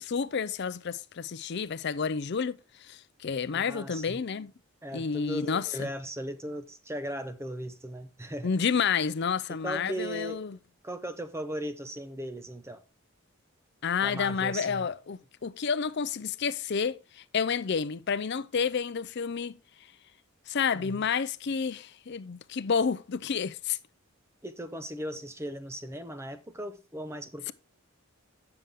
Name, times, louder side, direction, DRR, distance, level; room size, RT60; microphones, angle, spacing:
voice 1, 0.0-4.5 4.9-5.9 8.4-10.6 13.8-19.6 20.5-23.8, left 6 dB, 50° left, 0.4 m, -30 dB
voice 2, 3.5-4.2 4.8-8.5 9.5-10.4 10.8-12.8 14.0-14.9 20.7-21.0 24.4-27.5, right 1 dB, 10° right, 0.6 m, -37 dB
8.9 x 6.8 x 3.5 m
head